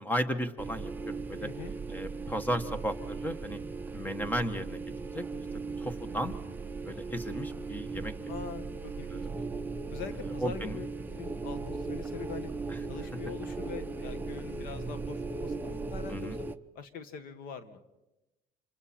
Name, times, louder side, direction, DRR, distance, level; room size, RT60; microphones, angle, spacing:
voice 1, 0.0-1.5 1.9-3.6 3.9-4.8 5.1-5.2 5.8-6.3 6.8-8.1 9.1-9.3 10.4-10.8 12.7-12.8 16.1-16.4, equal, 10° left, 12 dB, 1.2 m, -34 dB
sound 1, 0.6-16.6, right 4 dB, 10° right, 0.7 m, -38 dB
voice 2, 1.4-1.7 8.3-9.4 9.9-12.5 12.9-16.5 16.8-17.8, left 7 dB, 65° left, 11 dB, 1.7 m, -43 dB
29.0 x 26.5 x 4.4 m, 0.99 s
cardioid pair, 140°, 16 cm